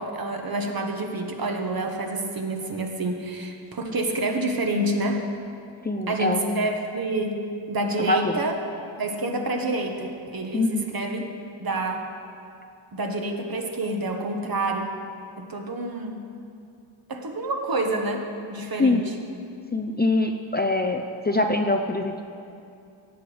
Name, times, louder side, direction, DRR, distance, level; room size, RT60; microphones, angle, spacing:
voice 1, 0.0-5.2 6.1-7.4 7.7-8.6 9.0-11.2 11.6-12.1 12.9-14.9 15.4-16.3 17.1-19.2, right 2 dB, 45° right, 3 dB, 1.3 m, -28 dB
voice 2, 5.9-6.6 8.0-8.3 10.5-10.8 18.8-19.0 19.7-22.2, left 2 dB, 20° left, 4 dB, 0.5 m, -24 dB
17.5 x 7.9 x 5.0 m, 2.5 s
wide cardioid pair, 120°, 49 cm